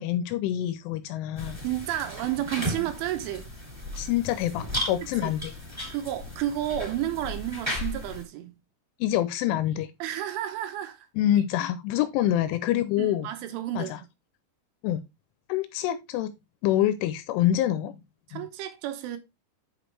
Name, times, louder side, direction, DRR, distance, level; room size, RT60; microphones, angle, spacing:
voice 1, 0.0-1.6 4.0-5.5 9.0-9.9 11.2-13.3 13.8-14.0 14.8-15.0 15.5-16.3 16.6-18.0 18.3-18.5, left 12 dB, 80° left, 2.9 m, -26 dB
sound 1, 1.4-8.2, equal, 5° right, 2.7 m, -35 dB
voice 2, 1.6-3.5 5.2-5.3 5.9-8.5 10.0-11.1 13.0-13.9 18.3-19.2, right 12 dB, 80° right, 3.1 m, -31 dB
8.3 x 6.1 x 3.2 m
omnidirectional pair, 5.9 m